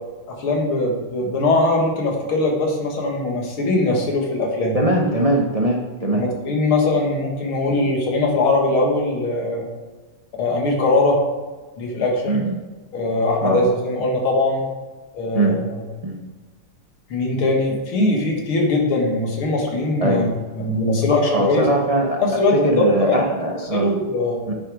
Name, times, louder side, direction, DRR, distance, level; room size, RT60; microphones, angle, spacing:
voice 1, 0.4-4.8 6.0-9.7 10.4-11.2 11.8-12.4 12.9-14.7 15.1-15.8 17.1-20.3 20.5-21.7 22.2-23.2 23.7-24.4, left 2 dB, 80° left, 0 dB, 2.5 m, -21 dB
voice 2, 4.7-6.2 7.7-7.8 12.3-12.5 13.4-13.6 15.3-15.5 16.0-16.2 20.0-20.2 21.3-22.2 22.6-23.9 24.5-24.6, right 1 dB, 60° right, 0 dB, 0.3 m, -20 dB
9.4 x 6.2 x 4.9 m, 1.3 s
omnidirectional pair, 2.3 m